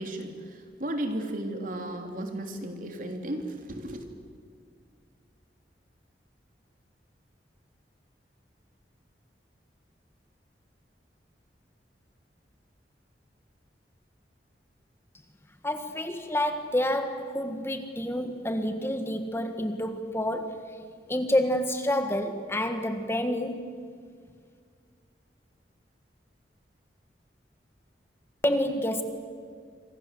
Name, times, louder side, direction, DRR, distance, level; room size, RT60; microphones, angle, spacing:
voice 1, 0.0-4.0, right 1 dB, 50° right, 4 dB, 3.4 m, -34 dB
voice 2, 15.6-20.8 21.1-23.6 28.4-29.0, left 1 dB, 15° left, 7 dB, 1.6 m, -28 dB
28.0 x 25.5 x 7.7 m, 2.1 s
head